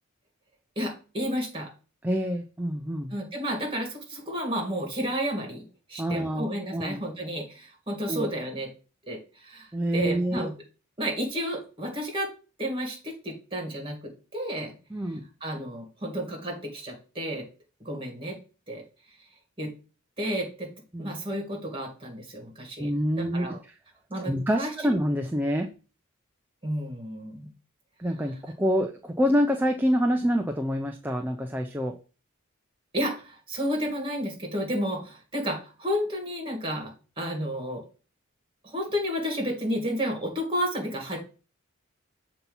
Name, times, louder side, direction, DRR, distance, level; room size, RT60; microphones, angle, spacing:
voice 1, 0.8-1.7 3.1-5.6 5.9-8.7 9.1-10.5 11.0-12.3 12.6-14.7 15.4-17.4 17.8-18.4 18.7-18.8 19.6-19.7 20.2-20.7 21.0-22.9 23.2-23.6 24.1-24.9 26.6-27.5 32.9-37.8 38.6-41.2, equal, 25° right, 1 dB, 1.9 m, -31 dB
voice 2, 2.0-3.1 6.0-7.0 8.1-8.3 9.7-10.5 14.9-15.2 20.9-21.1 22.8-23.6 24.2-25.7 28.0-32.0, equal, 10° right, 4 dB, 0.4 m, -27 dB
6.9 x 2.9 x 5.4 m, 0.35 s
head